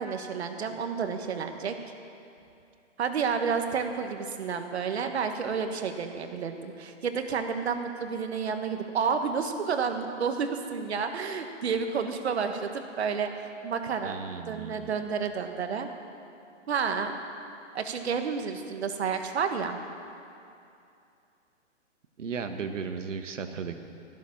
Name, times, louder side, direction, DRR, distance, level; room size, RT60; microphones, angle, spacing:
voice 1, 0.0-1.8 3.0-14.2 14.5-15.9 16.7-17.2 17.7-19.8, right 6 dB, 60° right, 6 dB, 1.5 m, -30 dB
voice 2, 14.0-15.0 22.2-23.8, right 6 dB, 75° right, 7 dB, 1.6 m, -36 dB
14.5 x 11.5 x 7.2 m, 2.6 s
hypercardioid pair, 165°, 37 cm